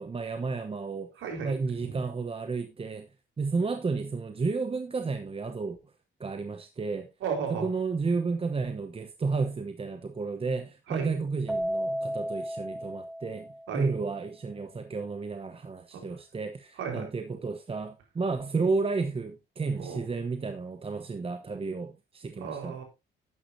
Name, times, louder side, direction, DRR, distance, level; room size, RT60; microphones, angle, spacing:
voice 1, 0.0-1.1 1.4-3.1 3.4-5.8 6.2-7.1 7.5-13.5 13.7-22.8, right 4 dB, 30° right, 1.0 m, -32 dB
voice 2, 1.2-2.0 7.2-7.7 10.9-11.1 13.7-13.9 15.9-16.0 16.8-17.0 19.8-20.0 22.4-22.8, right 6 dB, 80° right, 4.5 m, -34 dB
Keyboard (musical), 11.5-14.0, equal, 5° right, 1.4 m, -33 dB
11.5 x 9.5 x 2.7 m
cardioid pair, 90°, 20 cm